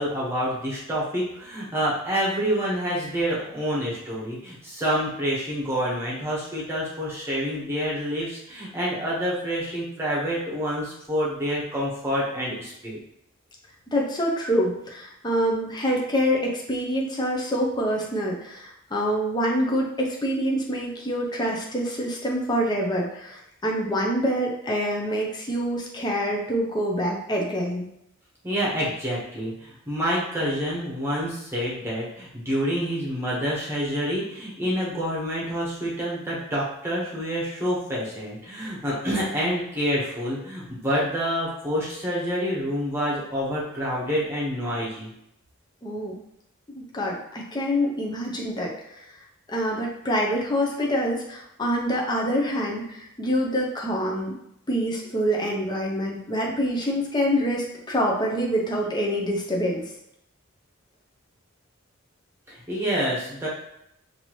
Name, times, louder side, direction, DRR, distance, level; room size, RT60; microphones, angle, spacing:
voice 1, 0.0-13.0 28.4-45.1 62.5-63.5, equal, 10° right, -6 dB, 1.1 m, -27 dB
voice 2, 13.9-27.9 45.8-46.2 46.7-49.1 49.5-54.3 54.7-59.8, equal, 20° left, -2 dB, 0.6 m, -26 dB
5.8 x 2.7 x 3.0 m, 0.79 s
head